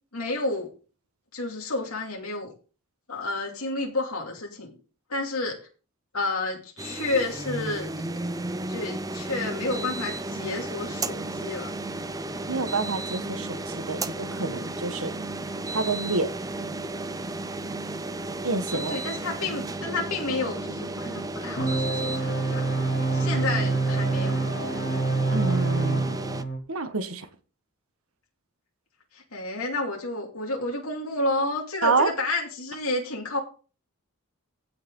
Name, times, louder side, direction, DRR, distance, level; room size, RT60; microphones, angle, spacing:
voice 1, 0.1-0.7 1.3-2.5 3.1-4.7 5.1-5.6 6.1-8.0 8.7-11.7 18.7-22.6 23.1-24.4 29.1-33.4, left 2 dB, 85° left, 2.6 m, -30 dB
sound 1, 6.8-26.4, right 2 dB, 15° right, 0.6 m, -33 dB
voice 2, 12.5-15.1 15.7-16.3 18.4-19.0 25.3-26.2 26.7-27.3 31.8-32.1, right 3 dB, 75° right, 1.5 m, -28 dB
sound 2, 21.6-26.6, right 3 dB, 50° left, 2.5 m, -26 dB
16.0 x 6.5 x 3.8 m
head